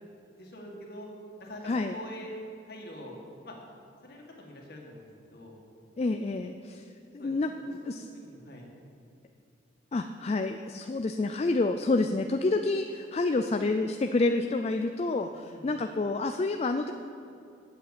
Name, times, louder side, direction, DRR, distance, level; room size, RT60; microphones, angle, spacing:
voice 1, 0.3-1.1 1.4-2.3 2.7-3.1 3.4-3.6 4.0-5.6 7.2-7.3 7.7-8.7 15.4-15.8, left 1 dB, 55° left, -1 dB, 2.0 m, -45 dB
voice 2, 1.6-2.0 6.0-6.8 7.1-7.5 7.8-8.1 9.9-16.9, left 3 dB, 35° left, 6 dB, 0.3 m, -28 dB
8.3 x 7.5 x 8.3 m, 2.7 s
head